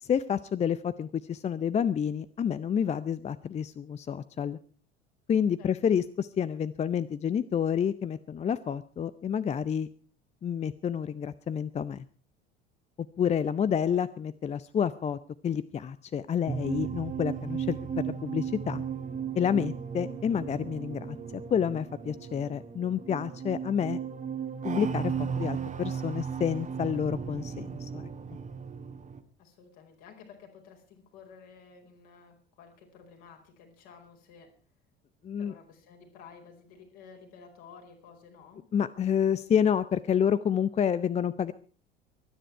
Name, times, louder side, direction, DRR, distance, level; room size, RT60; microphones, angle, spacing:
voice 1, 0.0-4.6 5.3-9.9 10.4-12.0 13.2-15.2 15.4-17.8 18.1-18.8 19.4-21.2 21.5-24.0 24.6-28.1 35.2-35.5 38.7-41.5, left 8 dB, 20° left, 16 dB, 0.6 m, -29 dB
sound 1, 16.5-29.2, right 7 dB, 25° right, 1.8 m, -35 dB
voice 2, 29.4-34.5 35.4-38.6, left 6 dB, 55° left, 3 dB, 4.8 m, -52 dB
23.5 x 10.0 x 4.6 m, 0.41 s
figure-of-eight pair, 70°, 31 cm